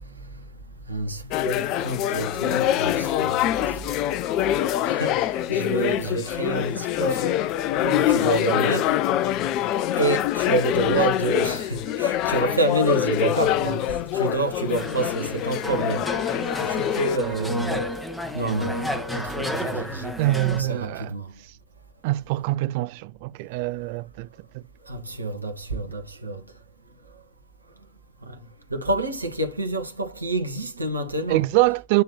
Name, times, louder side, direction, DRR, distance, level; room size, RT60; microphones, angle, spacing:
voice 1, 0.9-3.8 4.8-7.3 7.8-9.1 9.9-16.0 16.6-17.9 18.3-21.3 24.9-26.4 28.2-28.4 28.7-31.4, right 2 dB, 80° right, 1.3 m, -28 dB
sound 1, 1.3-17.2, left 12 dB, 40° left, 0.5 m, -25 dB
sound 2, 14.7-20.6, left 1 dB, 5° left, 1.2 m, -31 dB
voice 2, 20.2-21.1 21.4-21.5 22.0-24.3 24.5-24.6 31.3-32.0, right 18 dB, 50° right, 0.4 m, -24 dB
8.2 x 3.2 x 4.1 m
figure-of-eight pair, 90°, 0 cm